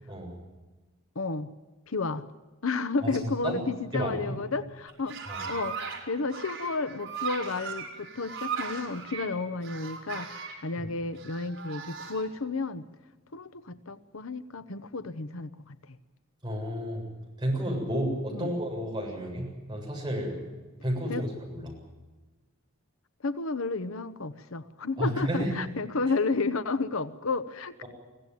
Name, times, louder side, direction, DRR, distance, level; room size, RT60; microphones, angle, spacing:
voice 1, 1.1-1.5 1.9-2.2 2.6-12.8 13.3-16.0 18.3-18.5 21.1-21.3 23.2-27.8, left 3 dB, 80° left, 12 dB, 1.0 m, -32 dB
voice 2, 3.9-4.3 5.3-5.4 10.8-10.9 16.4-17.1 17.4-20.4 20.8-21.7 25.0-25.5, equal, 20° right, -1 dB, 7.6 m, -31 dB
sound 1, 4.9-6.0 6.3-9.3 9.6-10.6 11.2-12.3, right 6 dB, 65° right, 5.0 m, -37 dB
23.5 x 16.5 x 9.3 m, 1.2 s
head